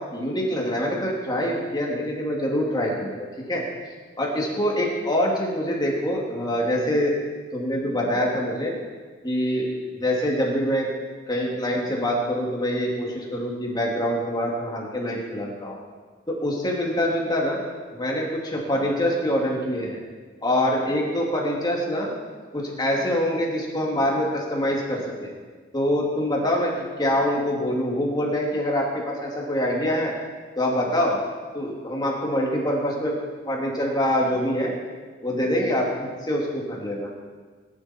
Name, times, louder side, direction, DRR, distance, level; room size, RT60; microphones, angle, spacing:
voice 1, 0.1-3.6 4.2-7.2 7.5-8.7 9.2-9.7 10.0-10.9 11.3-15.8 16.3-17.6 17.9-20.0 20.4-22.1 22.5-25.3 25.7-26.7 27.0-30.1 30.6-31.2 31.5-33.1 33.4-34.7 35.2-37.1, equal, 20° left, -2 dB, 2.6 m, -25 dB
20.0 x 11.5 x 4.5 m, 1.5 s
head